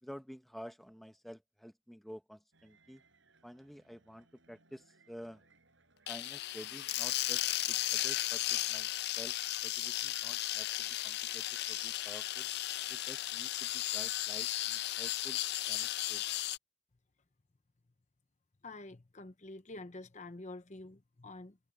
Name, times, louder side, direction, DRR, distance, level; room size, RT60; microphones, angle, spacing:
voice 1, 0.0-3.0 3.4-5.4 6.1-8.9 9.2-9.4 9.6-12.5 12.9-15.4 15.7-16.2, equal, ahead, 1.0 m, -50 dB
sound 1, 2.5-7.8, right 3 dB, 60° right, 5.8 m, -69 dB
sound 2, 6.1-16.6, left 15 dB, 50° left, 0.4 m, -35 dB
voice 2, 18.6-21.6, left 2 dB, 35° left, 0.9 m, -47 dB
head